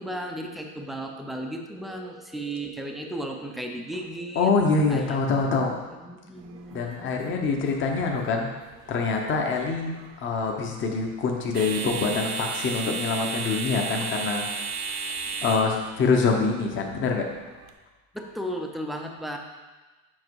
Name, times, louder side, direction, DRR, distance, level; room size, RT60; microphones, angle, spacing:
voice 1, 0.0-4.5 4.9-5.2 6.0-7.6 15.4-15.5 18.1-19.4, right 1 dB, ahead, 2 dB, 0.5 m, -35 dB
voice 2, 4.3-5.7 6.7-8.5 8.9-14.5 15.4-17.3, left 4 dB, 30° left, 1 dB, 0.9 m, -25 dB
sound 1, 6.4-17.7, right 5 dB, 40° right, 0.7 m, -36 dB
7.6 x 5.2 x 4.7 m, 1.2 s
cardioid pair, 145°, 41 cm